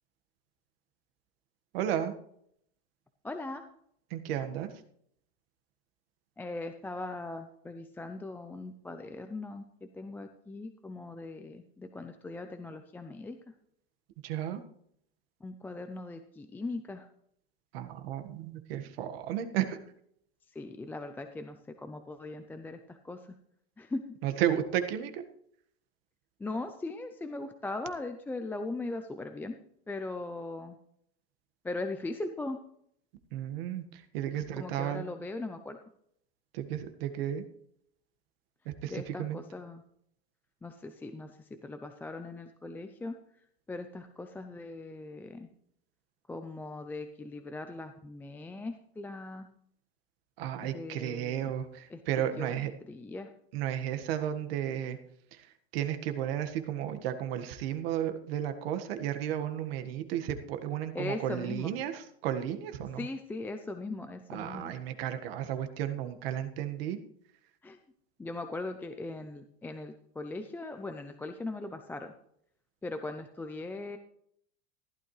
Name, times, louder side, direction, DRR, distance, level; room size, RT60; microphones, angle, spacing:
voice 1, 1.7-2.1 4.1-4.7 14.2-14.6 17.7-19.8 24.2-25.2 33.3-35.1 36.5-37.4 38.6-39.4 50.4-52.7 53.5-55.0 55.3-55.5 55.7-63.1 64.3-67.0, right 10 dB, 80° right, 8 dB, 1.6 m, -33 dB
voice 2, 3.2-3.6 6.4-13.4 15.4-17.1 20.5-23.3 23.8-24.0 26.4-29.6 29.9-30.8 31.6-32.6 34.6-35.8 38.9-39.8 40.6-43.1 43.7-45.5 46.3-49.5 50.6-51.5 51.9-52.0 52.4-53.3 60.9-61.7 63.0-64.7 67.6-67.8 68.2-72.1 72.8-74.0, left 2 dB, 5° left, 7 dB, 0.5 m, -39 dB
15.0 x 12.0 x 3.2 m, 0.69 s
supercardioid pair, 160°, 29 cm